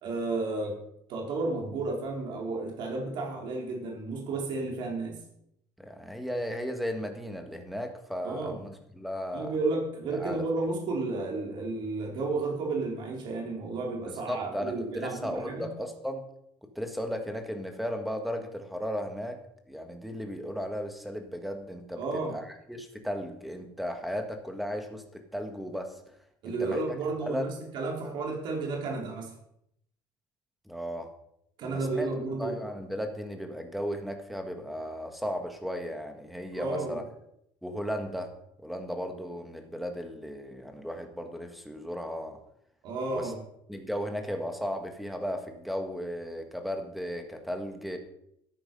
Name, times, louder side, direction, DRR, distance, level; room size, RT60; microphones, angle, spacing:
voice 1, 0.0-0.8 1.1-5.2 8.2-8.6 9.3-15.7 22.0-22.4 26.4-29.3 31.6-32.6 36.5-37.0 42.8-43.4, right 3 dB, 55° right, 0 dB, 4.2 m, -32 dB
voice 2, 5.8-9.6 10.1-10.4 14.1-16.2 16.6-19.4 19.7-22.0 22.3-26.0 26.4-26.8 27.2-27.5 30.7-31.1 31.6-32.1 32.4-37.0 37.6-38.3 38.6-42.4 43.1-43.3 43.7-48.0, equal, ahead, 5 dB, 1.7 m, -35 dB
13.5 x 10.5 x 5.4 m, 0.76 s
cardioid pair, 155°, 10 cm